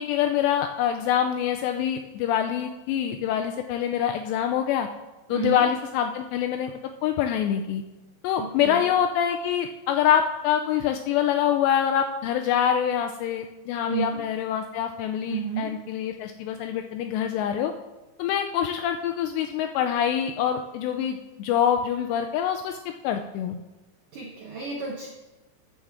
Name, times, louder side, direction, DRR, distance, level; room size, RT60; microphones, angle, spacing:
voice 1, 0.0-4.9 5.3-7.8 8.2-17.7 18.2-22.8 23.0-23.6, left 9 dB, 85° left, 5 dB, 2.4 m, -25 dB
voice 2, 8.4-8.9 13.9-14.2 15.3-15.7 24.1-25.1, right 6 dB, 85° right, -1 dB, 1.8 m, -31 dB
13.0 x 7.3 x 3.6 m, 1.1 s
omnidirectional pair, 5.4 m